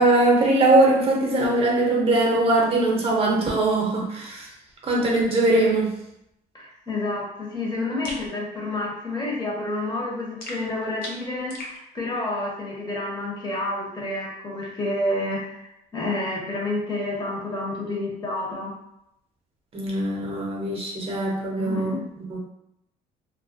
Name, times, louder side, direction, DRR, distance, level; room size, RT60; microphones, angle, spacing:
voice 1, 0.0-4.5 4.8-5.9 19.7-21.9 22.3-22.4, right 2 dB, 35° right, -2 dB, 0.6 m, -21 dB
voice 2, 6.5-18.7 21.6-22.0, left 2 dB, 25° left, -3 dB, 0.7 m, -29 dB
sound 1, 8.0-8.3 10.4-11.8, left 1 dB, 60° left, 0.7 m, -37 dB
2.3 x 2.1 x 2.5 m, 0.81 s
cardioid pair, 110°, 17 cm